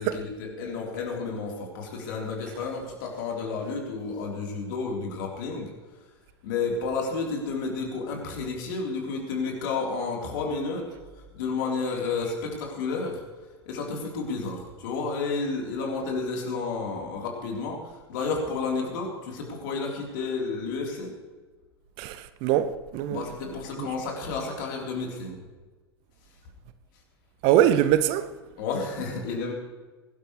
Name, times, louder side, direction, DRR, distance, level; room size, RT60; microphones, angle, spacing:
voice 1, 0.0-5.7 6.4-10.9 11.3-13.2 13.7-21.1 23.1-25.4 28.6-29.5, left 4 dB, 50° left, 4.0 m, -31 dB
voice 2, 22.0-23.2 23.8-23.9 27.4-28.3, right 11 dB, 40° right, 0.7 m, -23 dB
22.5 x 12.0 x 3.3 m
figure-of-eight pair, 90°, 14 cm